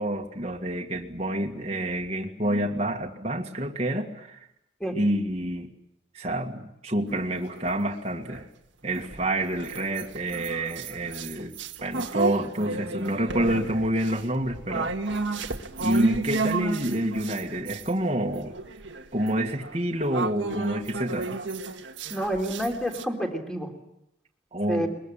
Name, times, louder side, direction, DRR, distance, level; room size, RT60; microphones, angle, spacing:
voice 1, 0.0-4.5 4.9-5.7 6.1-8.5 8.8-11.6 11.8-14.9 15.8-18.6 19.1-21.4 24.5-24.9, right 1 dB, 35° right, 0 dB, 2.0 m, -28 dB
sound 1, 7.1-8.5 9.0-17.9 18.3-23.0, right 3 dB, 85° right, 1.7 m, -33 dB
voice 2, 22.1-23.7 24.7-24.9, equal, 5° left, 3 dB, 3.4 m, -28 dB
22.5 x 22.0 x 8.9 m, 0.82 s
head